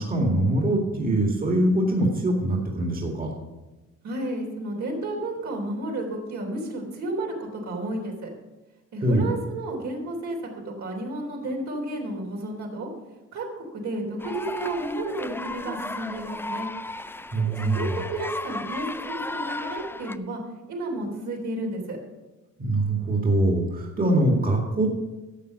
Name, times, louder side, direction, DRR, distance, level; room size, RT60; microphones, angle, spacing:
voice 1, 0.0-3.3 9.0-9.3 17.3-17.8 22.6-24.9, right 1 dB, 30° right, 0 dB, 2.2 m, -23 dB
voice 2, 4.0-8.3 8.9-12.9 13.3-16.7 17.6-20.4 20.7-22.0, right 1 dB, 65° right, -1 dB, 3.5 m, -32 dB
sound 1, 14.2-20.2, left 2 dB, 10° left, 0.4 m, -35 dB
11.5 x 7.2 x 6.5 m, 1.1 s
cardioid pair, 90°, 30 cm